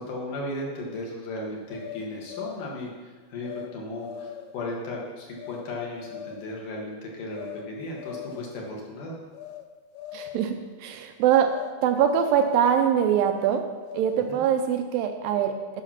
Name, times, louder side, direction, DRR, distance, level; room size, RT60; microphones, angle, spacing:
voice 1, 0.0-9.2 14.3-14.4, left 1 dB, 65° left, -2 dB, 2.8 m, -35 dB
sound 1, 1.7-2.8 3.4-3.7 4.0-4.6 5.4-5.7 6.0-6.5 7.3-7.7 7.9-8.6 9.3-9.7 9.9-10.6 11.5-11.8 12.0-12.8 13.4-14.4, left 11 dB, 85° left, 2.6 m, -40 dB
voice 2, 10.1-13.7 13.9-15.8, right 8 dB, 80° right, 6 dB, 2.2 m, -23 dB
10.0 x 5.8 x 5.8 m, 1.4 s
omnidirectional pair, 4.3 m